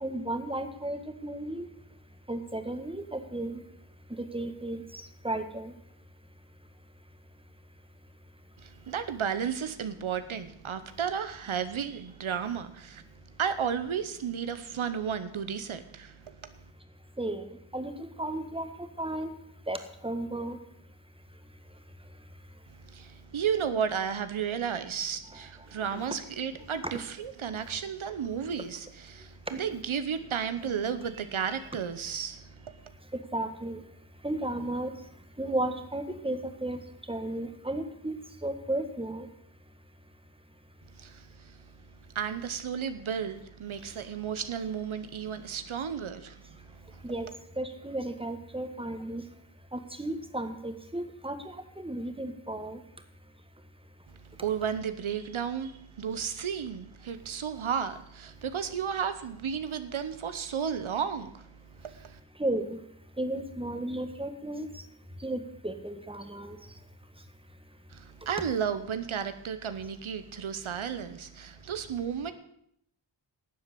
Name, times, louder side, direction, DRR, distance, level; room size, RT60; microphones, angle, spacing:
voice 1, 0.0-1.7 2.3-3.6 4.2-5.7 17.2-17.5 17.7-18.7 19.0-19.3 19.7-19.8 20.0-20.6 25.8-26.1 29.5-29.8 33.3-33.8 34.2-34.9 35.4-36.8 37.1-38.1 38.4-39.3 47.0-47.3 47.6-49.2 49.7-52.8 62.4-62.8 63.2-64.8 65.2-66.6, right 1 dB, 10° right, 1.6 m, -34 dB
voice 2, 8.6-13.0 13.4-16.5 22.7-32.9 40.9-41.7 42.1-47.1 54.1-62.2 67.9-72.3, right 7 dB, 90° right, 0.9 m, -33 dB
12.0 x 7.5 x 8.3 m
wide cardioid pair, 50°, 47 cm